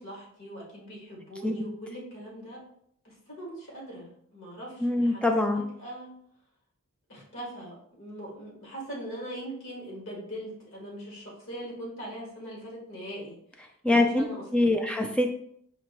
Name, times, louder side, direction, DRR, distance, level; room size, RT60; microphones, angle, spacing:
voice 1, 0.0-2.6 3.0-6.1 7.1-13.4 13.9-14.8, right 1 dB, 55° left, -4 dB, 1.8 m, -41 dB
voice 2, 4.8-5.7 13.8-14.2 14.5-15.3, left 2 dB, 5° left, 3 dB, 0.4 m, -24 dB
5.1 x 2.7 x 3.0 m, 0.67 s
head